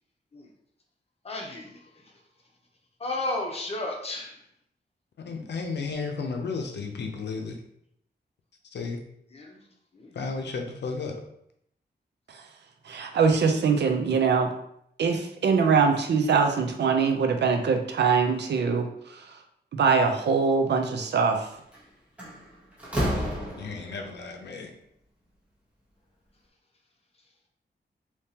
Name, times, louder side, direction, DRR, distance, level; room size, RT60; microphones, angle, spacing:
voice 1, 1.2-2.1 3.0-4.4 9.3-9.6 9.9-10.1, left 2 dB, 35° left, 0 dB, 0.7 m, -33 dB
voice 2, 5.2-7.6 8.7-9.0 10.1-11.1 23.6-24.7, left 4 dB, 75° left, 3 dB, 0.6 m, -33 dB
voice 3, 12.9-14.5 15.0-18.9 19.7-21.4, right 5 dB, 75° right, 5 dB, 0.5 m, -22 dB
Slam, 21.5-21.8 22.2-24.1, equal, 5° right, 0.9 m, -30 dB
3.5 x 2.8 x 2.8 m, 0.73 s
wide cardioid pair, 145°, 18 cm